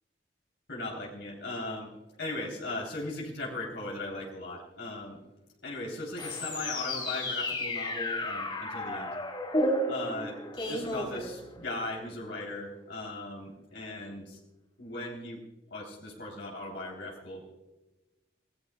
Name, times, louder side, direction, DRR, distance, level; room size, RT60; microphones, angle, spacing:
voice 1, 0.7-1.9 2.2-5.2 5.6-9.1 9.9-10.4 10.7-14.4 14.8-15.4 15.7-17.6, left 2 dB, 80° left, -2 dB, 3.7 m, -38 dB
sound 1, 6.2-11.8, left 1 dB, 30° left, 3.4 m, -33 dB
27.0 x 18.0 x 2.4 m, 1.1 s
head